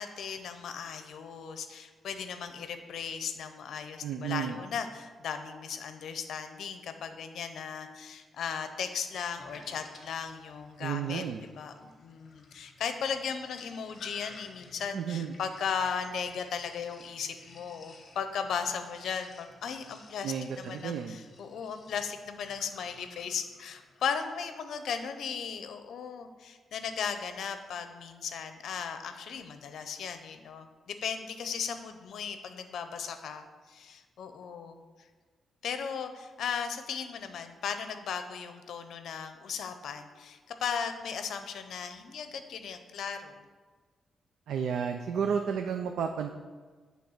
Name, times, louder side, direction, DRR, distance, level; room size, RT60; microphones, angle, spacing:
voice 1, 0.0-34.8 35.6-43.4, left 6 dB, 70° left, 8 dB, 0.6 m, -37 dB
voice 2, 4.0-4.6 10.8-11.4 14.9-15.3 20.2-21.2 44.5-46.3, right 7 dB, 80° right, 5 dB, 0.4 m, -32 dB
Sink (filling or washing), 9.3-24.3, left 3 dB, 40° left, 1.0 m, -55 dB
8.5 x 3.4 x 6.5 m, 1.4 s
wide cardioid pair, 165°, 0 cm